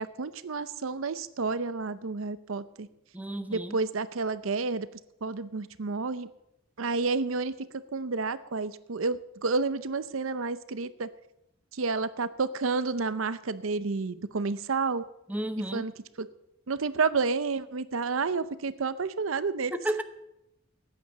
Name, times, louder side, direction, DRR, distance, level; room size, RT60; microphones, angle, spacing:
voice 1, 0.0-2.9 3.5-4.9 5.2-6.3 6.8-7.5 7.9-11.1 11.7-15.0 15.7-15.9 16.2-16.3 16.7-19.8, right 4 dB, 75° right, 15 dB, 0.7 m, -30 dB
voice 2, 3.1-3.8 15.3-15.9 19.7-20.0, right 1 dB, 10° right, 9 dB, 0.8 m, -32 dB
14.5 x 9.4 x 6.9 m, 0.86 s
head